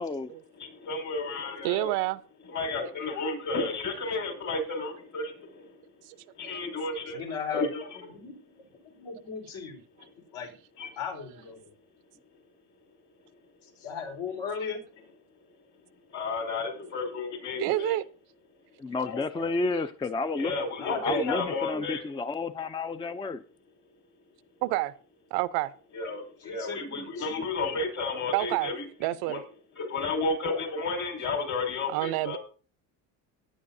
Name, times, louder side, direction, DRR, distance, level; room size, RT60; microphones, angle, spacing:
voice 1, 0.0-0.3 18.8-20.5 21.0-23.4, left 3 dB, 15° left, 0.5 m, -31 dB
voice 2, 0.6-1.9 2.5-5.6 6.4-7.3 7.5-7.9 10.8-10.9 16.1-18.0 19.1-19.2 20.4-22.0 25.9-28.9 29.2-29.4 29.8-32.4, left 3 dB, 50° left, 5.9 m, -32 dB
voice 3, 1.6-2.2 6.4-6.5 17.6-18.0 24.6-24.9 25.3-25.7 28.3-28.7 29.0-29.4 31.9-32.4, right 17 dB, 85° right, 0.7 m, -28 dB
voice 4, 7.1-7.7 8.1-9.8 10.3-10.6 11.0-11.7 13.6-14.8 19.3-19.6 20.8-21.8 26.4-27.4, left 5 dB, 75° left, 4.6 m, -37 dB
16.5 x 10.5 x 2.7 m
cardioid pair, 110°, 36 cm